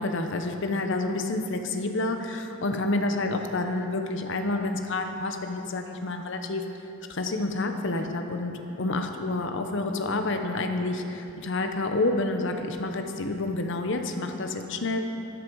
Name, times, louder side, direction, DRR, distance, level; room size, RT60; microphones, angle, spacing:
voice 1, 0.0-6.6 7.1-15.0, left 2 dB, 60° left, 5 dB, 0.9 m, -29 dB
13.0 x 9.9 x 4.7 m, 2.9 s
head